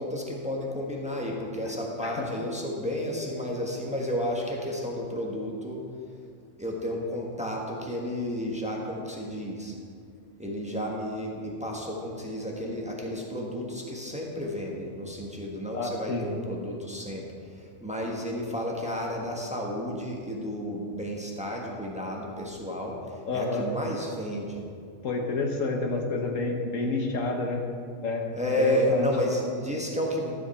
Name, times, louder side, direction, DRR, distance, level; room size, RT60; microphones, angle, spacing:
voice 1, 0.0-5.8 6.6-9.7 10.4-17.2 17.8-23.0 23.3-24.6 28.3-30.3, equal, 5° right, -2 dB, 1.3 m, -31 dB
voice 2, 15.7-16.3 23.3-23.7 25.0-27.6 28.0-28.3 28.6-29.1, left 3 dB, 90° left, 2 dB, 1.6 m, -29 dB
13.0 x 7.9 x 4.3 m, 2.3 s
omnidirectional pair, 1.3 m